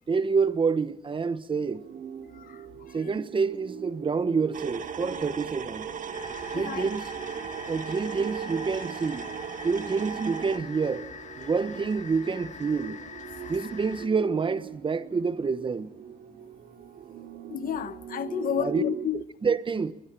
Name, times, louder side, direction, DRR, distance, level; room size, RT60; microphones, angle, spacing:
voice 1, 0.1-1.8 2.9-5.9 6.5-7.1 7.7-9.3 9.6-11.1 11.4-13.0 13.5-15.9 18.6-18.8 19.4-19.9, right 5 dB, 35° right, 1.0 m, -27 dB
sound 1, 1.5-19.1, right 8 dB, 90° right, 2.5 m, -42 dB
voice 2, 2.3-3.2 6.5-6.9 13.4-13.5 17.5-19.2, left 10 dB, 70° left, 1.0 m, -32 dB
sound 2, 4.5-10.6, right 7 dB, 60° right, 1.7 m, -37 dB
sound 3, 6.1-14.1, left 6 dB, 55° left, 2.3 m, -44 dB
22.5 x 21.5 x 7.5 m
cardioid pair, 105°, 15 cm